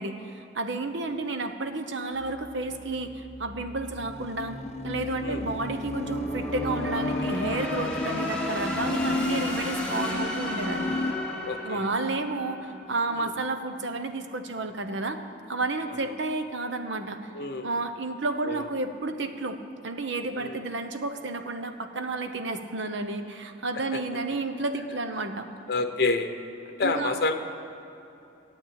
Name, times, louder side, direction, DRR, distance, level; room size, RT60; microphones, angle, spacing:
voice 1, 0.0-4.6 4.8-10.9 11.6-15.2 15.5-17.2 17.6-19.6 19.8-25.5 26.8-27.1, right 3 dB, 70° right, 7 dB, 0.9 m, -31 dB
sound 1, 2.2-13.2, left 1 dB, 5° left, 1.5 m, -34 dB
sound 2, 4.1-11.1, left 2 dB, 35° left, 0.4 m, -33 dB
voice 2, 11.4-11.9 13.1-13.3 15.9-16.1 17.3-17.8 18.4-18.7 20.3-20.6 23.9-24.0 25.7-26.3 26.7-27.3, left 3 dB, 50° left, 6 dB, 0.8 m, -29 dB
12.0 x 8.5 x 8.8 m, 2.8 s
head